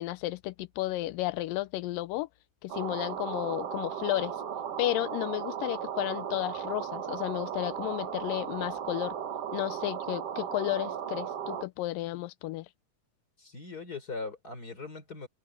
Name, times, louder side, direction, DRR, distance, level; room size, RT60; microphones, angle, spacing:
voice 1, 0.0-2.3 2.6-4.4 4.8-9.2 9.5-12.7, left 17 dB, 85° left, 2.3 m, -33 dB
sound 1, 2.7-11.6, right 8 dB, 55° right, 2.1 m, -36 dB
voice 2, 13.4-15.3, left 4 dB, 25° left, 3.7 m, -40 dB
open air
omnidirectional pair, 3.9 m